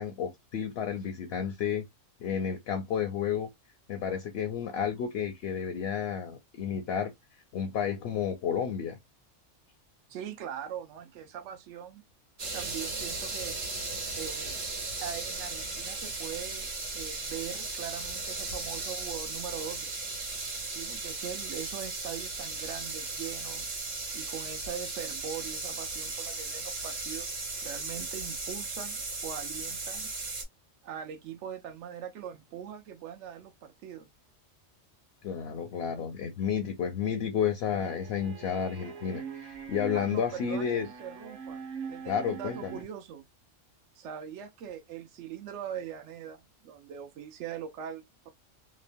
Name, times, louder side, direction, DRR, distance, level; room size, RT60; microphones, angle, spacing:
voice 1, 0.0-1.9 2.2-3.5 3.9-7.1 7.5-9.0 35.2-40.9 42.1-42.8, left 7 dB, 65° left, 0.7 m, -31 dB
voice 2, 10.1-12.0 12.5-13.6 14.2-14.6 15.0-16.7 16.9-19.9 20.7-23.7 24.1-27.3 27.6-30.1 30.8-34.1 39.9-41.6 41.9-43.3 44.0-48.3, right 9 dB, 70° right, 0.9 m, -41 dB
sound 1, 12.4-30.4, right 3 dB, 55° right, 1.3 m, -36 dB
sound 2, 37.7-42.8, right 6 dB, 90° right, 1.2 m, -43 dB
3.0 x 2.0 x 2.5 m
omnidirectional pair, 1.3 m